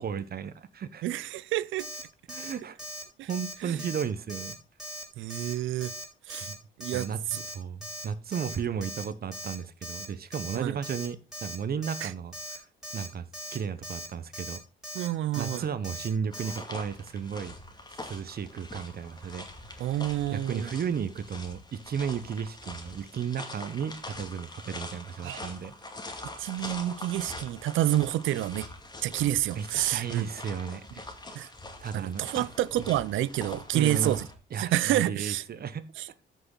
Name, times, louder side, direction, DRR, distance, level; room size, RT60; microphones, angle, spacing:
voice 1, 0.0-1.0 2.3-2.8 3.2-4.6 6.4-6.6 6.9-7.2 7.5-12.7 12.9-13.3 13.5-14.6 15.4-17.5 17.9-19.5 19.8-25.7 29.5-31.0 31.3-31.5 31.8-32.5 33.7-34.2 34.5-35.8, right 7 dB, 50° right, 0.9 m, -34 dB
voice 2, 1.0-1.9 3.2-3.3 3.6-3.8 5.2-5.9 6.3-6.5 6.8-7.4 10.5-10.8 12.0-12.1 14.9-15.7 19.8-20.7 25.2-25.4 26.4-28.7 29.0-30.3 31.4-31.5 31.9-34.3 34.6-35.4 36.0-36.1, right 14 dB, 80° right, 0.6 m, -28 dB
Alarm, 1.8-2.0 2.3-2.5 2.8-3.0 3.3-3.5 3.8-4.0 4.3-4.5 4.8-5.0 5.3-5.5 5.8-6.0 6.3-6.5 6.8-7.0 7.3-7.5 7.8-8.0 8.3-8.5 8.8-9.0 9.3-9.5 9.8-10.1 10.3-10.6 10.8-11.1 11.3-11.6 11.8-12.1 12.3-12.6 12.8-13.1 13.3-13.6 13.8-14.1 14.3-14.6 14.8-15.1 15.3-15.6 15.8-16.1 16.3-16.6, equal, ahead, 4.1 m, -39 dB
sound 1, 16.3-34.3, left 2 dB, 20° left, 2.2 m, -44 dB
13.5 x 6.1 x 3.9 m
cardioid pair, 90°, 20 cm